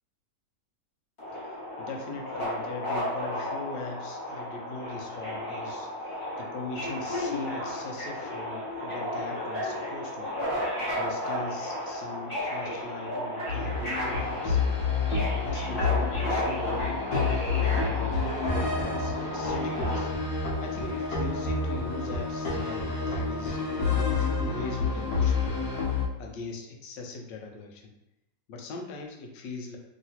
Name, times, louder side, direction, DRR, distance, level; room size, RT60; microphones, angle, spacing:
Subway metro underground, 1.2-20.0, left 1 dB, 30° left, 1.4 m, -33 dB
voice 1, 1.8-10.3 10.9-14.6 15.1-17.0 17.5-20.1 20.6-25.6 26.2-27.9 28.5-29.8, left 3 dB, 85° left, 2 dB, 1.3 m, -40 dB
sound 1, 13.5-26.1, left 4 dB, 65° left, 1.2 m, -29 dB
3.1 x 2.8 x 2.7 m, 0.91 s
omnidirectional pair, 1.9 m